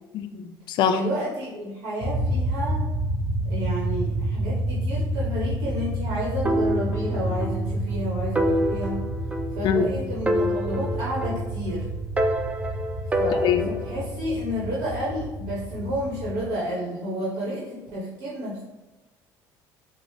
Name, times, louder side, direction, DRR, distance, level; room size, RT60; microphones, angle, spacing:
voice 1, 0.1-1.0 9.6-9.8 13.4-13.7, left 8 dB, 65° left, 9 dB, 0.4 m, -23 dB
voice 2, 0.9-2.8 3.4-9.0 9.5-11.9 13.2-18.6, equal, 70° right, -6 dB, 1.1 m, -31 dB
sound 1, 2.0-16.5, right 1 dB, 55° right, 1.2 m, -29 dB
sound 2, 6.5-7.6 7.9-8.0 8.4-9.9 10.3-11.7 12.2-14.0, equal, 15° right, 0.4 m, -27 dB
5.1 x 2.0 x 3.2 m, 1.1 s
supercardioid pair, 95°, 9 cm